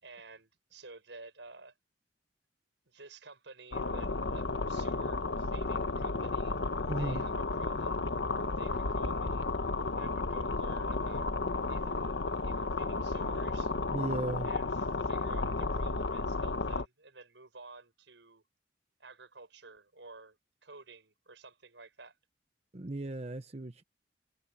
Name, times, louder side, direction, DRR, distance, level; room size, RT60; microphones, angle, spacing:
voice 1, 0.0-1.7 2.9-6.6 6.9-8.0 8.6-9.5 9.9-11.3 11.7-12.1 12.4-13.7 14.4-18.4 19.0-20.4 20.6-22.2, right 3 dB, 85° right, 5.5 m, -51 dB
sound 1, 3.7-16.9, left 3 dB, 85° left, 1.2 m, -33 dB
voice 2, 6.9-7.2 13.9-14.5 22.7-23.8, right 2 dB, 35° right, 0.9 m, -35 dB
head